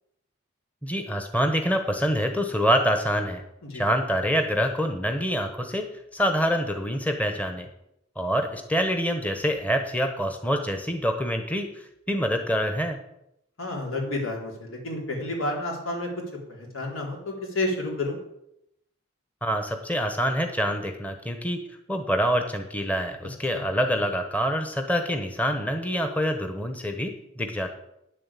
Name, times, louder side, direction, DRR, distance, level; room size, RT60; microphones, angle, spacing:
voice 1, 0.8-3.4 3.7-5.9 6.1-7.7 8.2-11.7 12.1-13.0 19.4-21.6 21.9-27.7, equal, 5° left, 5 dB, 1.1 m, -26 dB
voice 2, 13.6-16.1 16.5-18.2 23.5-23.6, left 2 dB, 80° left, -1 dB, 4.0 m, -30 dB
10.0 x 7.7 x 8.3 m, 0.81 s
head